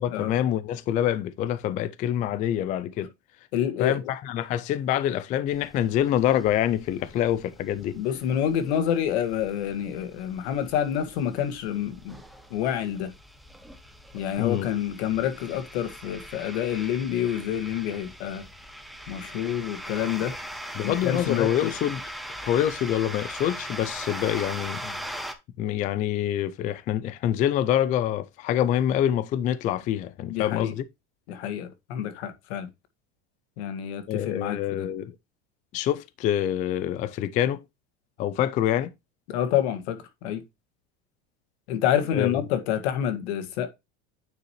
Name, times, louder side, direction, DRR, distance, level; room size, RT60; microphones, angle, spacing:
voice 1, 0.0-3.1 3.8-8.0 14.4-14.7 20.8-22.0 22.4-25.0 25.6-30.8 34.1-35.1 35.7-37.6 38.2-38.9 42.1-42.4, left 11 dB, 25° left, 0.3 m, -26 dB
voice 2, 3.5-4.1 7.9-12.2 12.5-13.1 14.1-18.4 19.1-20.3 20.8-21.7 30.3-30.7 31.3-32.7 33.6-34.9 39.3-40.4 41.7-43.7, left 9 dB, 75° left, 1.9 m, -28 dB
sound 1, 5.5-25.3, equal, ahead, 0.9 m, -41 dB
9.3 x 4.9 x 3.0 m
supercardioid pair, 160°, 32 cm